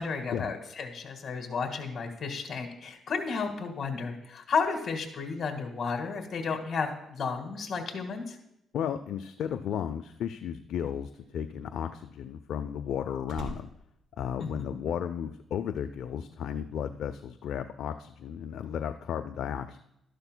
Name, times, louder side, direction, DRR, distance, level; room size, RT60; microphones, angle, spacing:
voice 1, 0.0-8.4 14.4-14.8, left 5 dB, 50° left, 4 dB, 1.8 m, -33 dB
voice 2, 8.7-13.7 14.2-19.8, left 8 dB, 75° left, 8 dB, 0.4 m, -34 dB
Slam, 11.0-15.1 15.4-15.8, right 1 dB, 85° right, 1.8 m, -47 dB
12.5 x 11.5 x 2.2 m, 0.80 s
cardioid pair, 90°, 0 cm